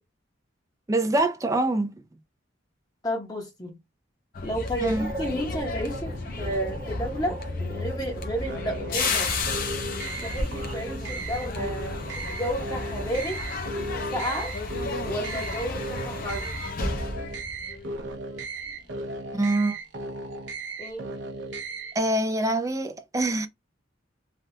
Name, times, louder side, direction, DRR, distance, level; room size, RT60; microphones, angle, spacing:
voice 1, 0.9-2.0 4.8-5.1 19.3-19.8 21.9-23.5, right 1 dB, 15° right, 0.4 m, -25 dB
voice 2, 3.0-3.8 4.4-7.4 7.7-9.3 10.2-13.4 14.1-14.5 15.1-16.5 20.8-21.1, equal, 20° left, 0.9 m, -31 dB
sound 1, 4.3-18.4 18.6-18.9, left 3 dB, 50° left, 0.6 m, -33 dB
sound 2, 5.0-10.9, right 1 dB, 35° right, 1.0 m, -41 dB
sound 3, 8.4-22.0, right 2 dB, 65° right, 0.7 m, -36 dB
3.3 x 2.3 x 2.7 m
head